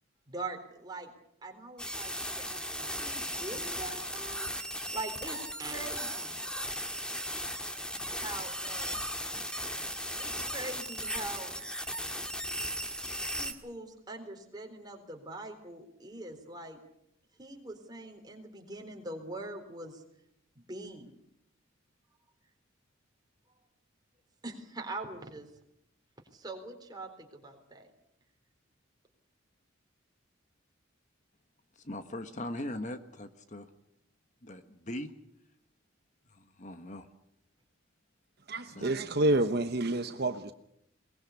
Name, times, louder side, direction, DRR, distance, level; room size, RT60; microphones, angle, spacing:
voice 1, 0.3-1.1 1.4-4.5 4.9-6.4 8.2-9.0 10.2-11.5 13.3-16.8 17.4-20.0 20.6-21.1 24.4-25.5 26.3-27.9, right 2 dB, 20° right, 3 dB, 4.0 m, -43 dB
sound 1, 1.8-13.5, equal, 5° left, 1.9 m, -36 dB
voice 2, 31.8-33.6 34.4-35.1 36.3-37.1 38.7-39.2, left 1 dB, 35° left, 9 dB, 1.4 m, -40 dB
voice 3, 38.5-40.5, right 2 dB, 50° right, 9 dB, 1.0 m, -28 dB
22.0 x 20.5 x 8.3 m, 0.76 s
head